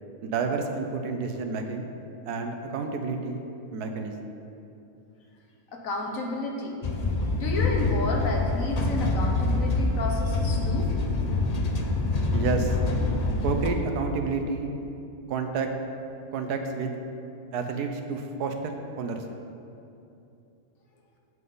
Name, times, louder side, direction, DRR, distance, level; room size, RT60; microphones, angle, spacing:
voice 1, 0.2-1.9 2.3-3.4 3.7-4.1 12.3-12.8 13.4-14.7 15.3-15.7 16.3-16.9 17.5-19.2, right 4 dB, 90° right, 5 dB, 1.3 m, -30 dB
voice 2, 5.7-6.8 7.1-10.9, left 2 dB, 60° left, 0 dB, 1.5 m, -31 dB
sound 1, 6.8-13.7, left 2 dB, 45° left, 0.5 m, -26 dB
15.5 x 5.6 x 3.9 m, 2.7 s
omnidirectional pair, 1.6 m